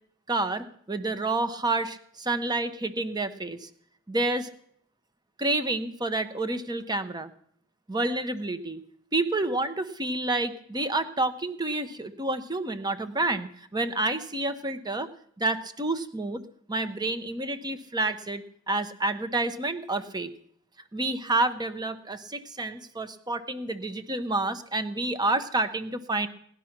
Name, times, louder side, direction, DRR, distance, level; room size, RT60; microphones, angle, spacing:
voice 1, 0.3-3.7 4.1-4.5 5.4-7.3 7.9-8.8 9.1-15.1 15.4-16.4 16.7-20.3 20.9-26.3, right 2 dB, 20° right, 11 dB, 1.0 m, -29 dB
18.0 x 11.5 x 6.0 m, 0.65 s
head